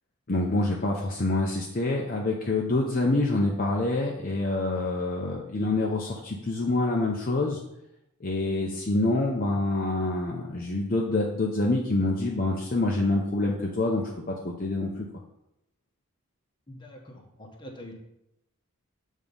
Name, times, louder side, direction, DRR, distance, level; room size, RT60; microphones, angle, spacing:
voice 1, 0.3-7.6 8.2-14.0 14.4-15.1, left 2 dB, 40° left, -1 dB, 0.6 m, -26 dB
voice 2, 16.7-18.0, left 1 dB, 20° left, 1 dB, 1.0 m, -44 dB
7.0 x 3.6 x 5.3 m, 0.84 s
head